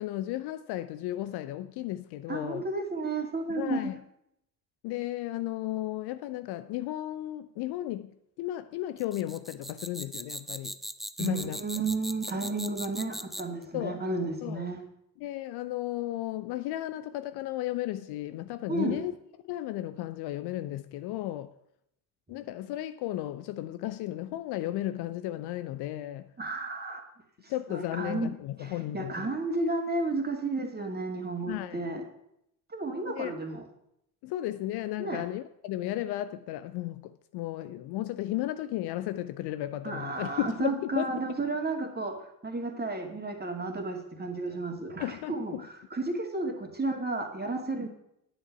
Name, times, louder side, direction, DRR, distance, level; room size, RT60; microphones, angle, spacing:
voice 1, 0.0-2.7 3.5-4.0 4.8-10.8 11.2-11.6 13.7-14.0 14.4-14.7 15.2-19.1 19.4-21.5 22.3-26.3 27.5-29.3 31.5-31.9 33.1-33.3 34.2-41.1 45.0-45.7, left 14 dB, 55° left, 0.6 m, -34 dB
voice 2, 2.3-3.9 11.2-14.8 18.7-19.0 26.4-27.0 27.7-28.3 28.6-32.0 32.7-33.6 35.0-35.2 39.8-42.2 42.4-47.9, right 2 dB, 20° right, 2.3 m, -32 dB
sound 1, 9.0-13.6, equal, ahead, 0.3 m, -39 dB
9.9 x 8.1 x 5.8 m
figure-of-eight pair, 45°, 49 cm